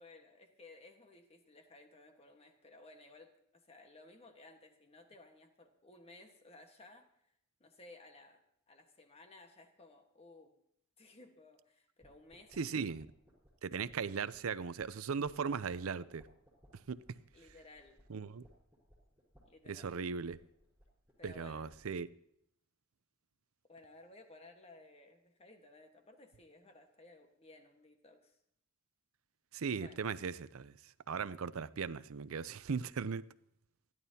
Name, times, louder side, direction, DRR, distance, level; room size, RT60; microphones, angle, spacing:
voice 1, 0.0-7.1 7.6-8.4 8.7-10.5 11.0-12.6 17.3-18.0 19.4-19.9 21.2-21.7 23.7-28.4 29.7-30.0, left 2 dB, 30° left, 1.4 m, -58 dB
sound 1, 12.0-22.1, equal, 5° right, 4.1 m, -66 dB
voice 2, 12.6-13.1 13.6-16.3 16.9-17.0 18.1-18.4 19.7-20.4 21.2-22.1 29.5-30.8 31.1-33.2, right 5 dB, 85° right, 0.6 m, -38 dB
28.5 x 11.0 x 2.8 m
head